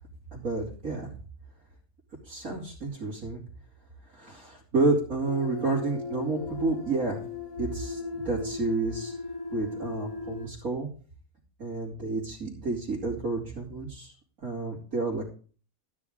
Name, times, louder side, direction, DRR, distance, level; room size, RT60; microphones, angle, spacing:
voice 1, 0.3-1.1 2.2-3.4 4.1-7.2 7.6-9.2 9.5-10.9 11.6-14.1 14.4-15.3, right 3 dB, 80° right, -6 dB, 3.3 m, -30 dB
sound 1, 5.3-10.5, left 4 dB, 75° left, 1.8 m, -37 dB
13.0 x 10.5 x 3.7 m, 0.39 s
omnidirectional pair, 1.5 m